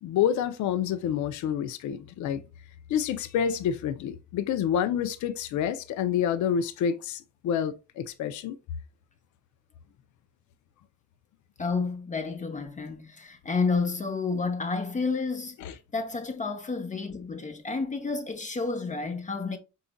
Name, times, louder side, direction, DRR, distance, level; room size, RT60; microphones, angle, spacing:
voice 1, 0.0-2.4 2.9-8.6 15.6-15.7, left 9 dB, 75° left, 0.5 m, -28 dB
voice 2, 11.6-15.6 15.9-19.6, left 4 dB, 25° left, 0.7 m, -30 dB
4.7 x 3.9 x 2.2 m
cardioid pair, 90°, 30 cm